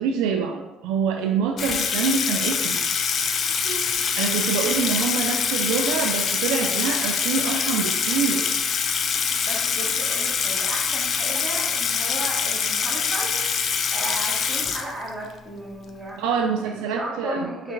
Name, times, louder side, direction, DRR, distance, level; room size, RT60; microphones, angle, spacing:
voice 1, 0.0-2.8 4.2-8.6 16.2-17.5, right 6 dB, 85° right, 4 dB, 0.3 m, -25 dB
Water tap faucet / Sink (filling or washing), 1.6-15.3, left 6 dB, 50° left, 0.3 m, -24 dB
voice 2, 3.6-3.9 4.6-4.9 9.5-16.3 16.6-17.7, right 1 dB, 25° right, -4 dB, 1.4 m, -35 dB
3.6 x 2.4 x 4.4 m, 1.0 s
supercardioid pair, 85°, 0 cm